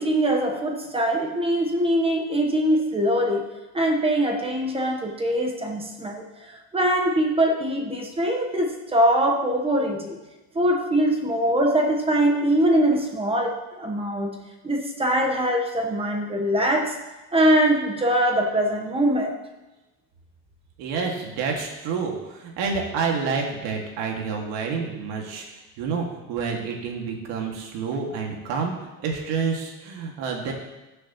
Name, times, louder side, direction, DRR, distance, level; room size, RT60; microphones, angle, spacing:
voice 1, 0.0-3.5 3.7-10.2 10.5-14.4 14.6-17.0 17.3-19.3, right 1 dB, 15° right, 2 dB, 1.0 m, -22 dB
voice 2, 20.8-25.4 25.8-30.5, right 5 dB, 75° right, 1 dB, 2.1 m, -28 dB
15.5 x 6.4 x 3.0 m, 1.1 s
cardioid pair, 160°, 42 cm